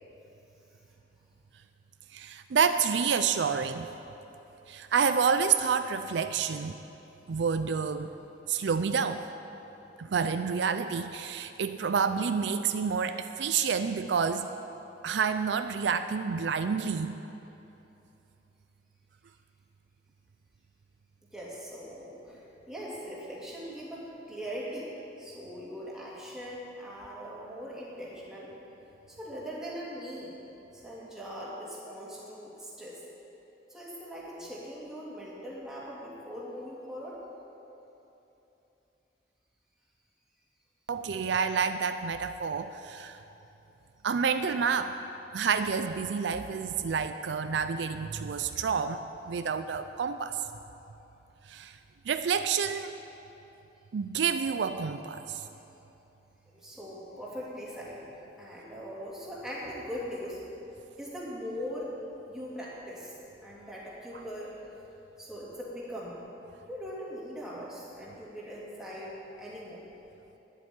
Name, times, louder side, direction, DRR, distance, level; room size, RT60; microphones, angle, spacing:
voice 1, 2.1-3.9 4.7-6.7 7.3-8.1 8.5-9.3 10.0-14.5 15.0-17.2 40.9-43.2 44.0-44.9 45.3-49.0 49.3-50.4 51.5-51.8 52.1-52.9 53.9-55.4, right 6 dB, 70° right, 10 dB, 0.4 m, -28 dB
voice 2, 21.3-28.5 29.1-30.4 30.7-33.0 33.7-37.2 56.5-58.1 58.4-60.4 61.0-61.9 62.3-64.8 65.2-66.2 66.7-69.8, equal, 5° right, -6 dB, 2.6 m, -41 dB
10.0 x 7.9 x 9.6 m, 3.0 s
head